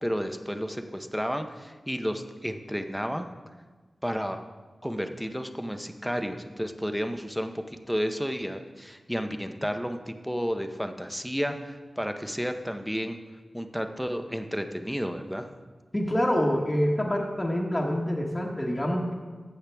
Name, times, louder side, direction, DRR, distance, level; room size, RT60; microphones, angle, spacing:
voice 1, 0.0-3.3 4.0-4.4 4.8-13.2 13.5-15.5, equal, ahead, 6 dB, 0.7 m, -32 dB
voice 2, 15.9-19.1, equal, 20° left, -2 dB, 1.3 m, -26 dB
14.5 x 8.3 x 3.4 m, 1.4 s
wide cardioid pair, 85°, 0 cm